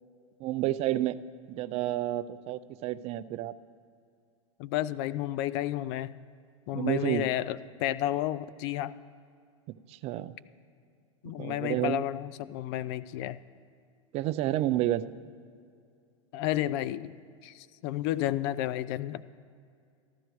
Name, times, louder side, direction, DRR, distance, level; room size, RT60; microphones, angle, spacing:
voice 1, 0.4-1.2 1.5-3.5 6.7-7.3 9.9-10.3 11.4-12.0 14.1-15.1, right 14 dB, 40° right, 14 dB, 0.4 m, -30 dB
voice 2, 4.6-6.1 6.7-8.9 11.2-13.4 16.3-17.1 17.4-19.2, left 13 dB, 55° left, 16 dB, 0.4 m, -31 dB
14.5 x 11.5 x 3.1 m, 2.4 s
hypercardioid pair, 105°, 17 cm